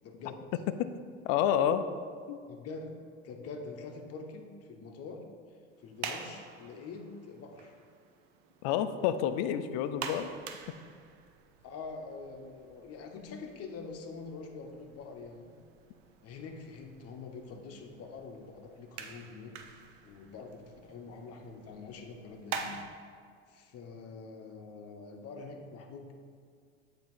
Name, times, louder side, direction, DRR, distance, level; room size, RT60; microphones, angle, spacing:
voice 1, 0.0-0.5 2.5-5.3 5.8-7.7 10.8-10.9 11.6-15.5 16.2-22.8 23.5-26.1, left 4 dB, 40° left, 3 dB, 0.9 m, -45 dB
voice 2, 1.2-1.9 2.3-2.4 8.6-10.3, left 10 dB, 60° left, 11 dB, 0.5 m, -29 dB
sound 1, 5.7-22.8, right 6 dB, 60° right, 0.7 m, -47 dB
8.0 x 3.0 x 4.4 m, 2.2 s
hypercardioid pair, 85°, 36 cm